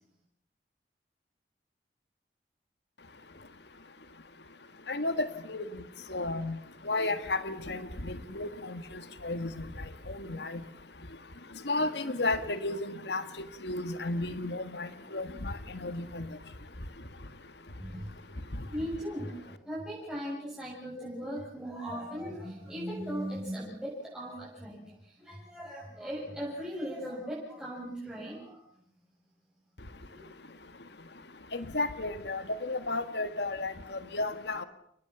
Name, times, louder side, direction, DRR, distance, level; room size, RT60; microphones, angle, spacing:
voice 1, 4.9-5.7 6.1-6.6 6.9-8.8 9.2-9.6 10.2-10.6 11.7-13.2 13.6-15.5 15.8-16.3 31.5-34.6, left 2 dB, 75° left, 10 dB, 1.9 m, -33 dB
voice 2, 17.8-18.1 18.7-28.6 30.1-30.3, equal, 5° right, -7 dB, 7.4 m, -38 dB
29.5 x 19.0 x 7.1 m, 0.71 s
head